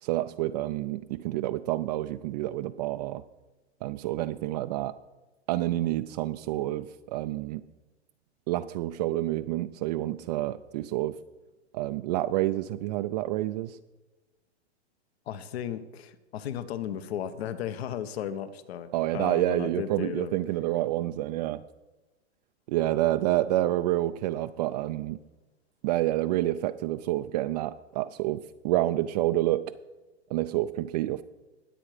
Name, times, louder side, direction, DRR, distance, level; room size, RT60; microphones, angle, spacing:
voice 1, 0.0-3.2 3.8-5.0 5.5-7.6 8.5-11.2 11.7-13.8 18.9-21.6 22.7-25.2 25.8-29.6 30.3-31.2, right 15 dB, 40° right, 9 dB, 0.4 m, -28 dB
voice 2, 15.3-20.4, left 9 dB, 65° left, 13 dB, 1.2 m, -35 dB
20.0 x 7.7 x 5.0 m, 1.1 s
hypercardioid pair, 135°, 34 cm